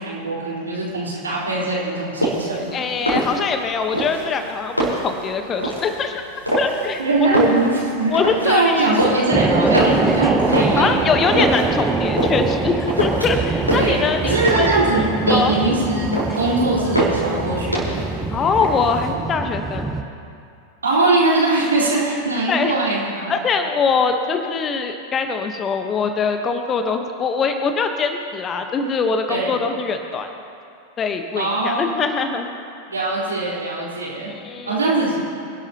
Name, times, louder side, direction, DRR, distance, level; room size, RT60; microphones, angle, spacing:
voice 1, 0.0-2.8 7.0-8.2 8.4-11.1 13.7-18.0 20.8-23.3 29.3-29.6 31.3-32.0 32.9-34.3 34.7-35.2, right 2 dB, 75° right, -6 dB, 4.1 m, -21 dB
sound 1, 2.1-2.6 2.9-3.6 3.9-5.2 5.6-5.9 6.4-6.9 7.2-8.5 8.8-9.3 9.7-11.7 12.2-12.6 12.9-13.4 13.7-14.8 15.1-15.6 16.0-16.5 16.9-17.3 17.7-18.2 18.5-19.1, right 1 dB, 85° left, 4.4 m, -23 dB
voice 2, 2.7-6.2 6.6-7.5 8.1-9.0 10.8-14.7 15.3-15.5 18.3-19.9 22.5-22.7 23.3-30.3 31.0-32.5 34.3-34.8, left 5 dB, 25° left, 6 dB, 1.2 m, -23 dB
sound 2, 9.3-20.0, right 3 dB, 10° right, 1.0 m, -23 dB
26.0 x 12.0 x 3.0 m, 2.5 s
figure-of-eight pair, 90°, 0 cm